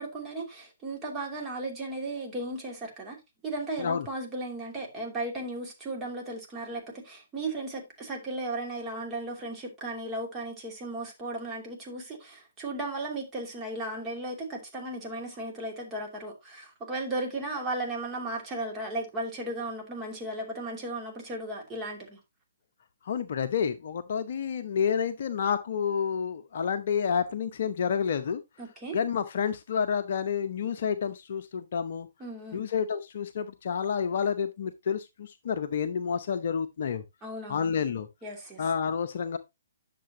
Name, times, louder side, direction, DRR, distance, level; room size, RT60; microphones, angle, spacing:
voice 1, 0.0-3.2 3.4-22.2 28.6-29.0 32.2-32.6 37.2-37.8 38.2-38.7, right 2 dB, 15° right, 2.8 m, -35 dB
voice 2, 23.1-28.4 28.9-32.1 32.5-37.0 37.5-38.1 38.6-39.4, left 7 dB, 45° left, 0.8 m, -29 dB
10.0 x 6.8 x 2.8 m
figure-of-eight pair, 125°, 0 cm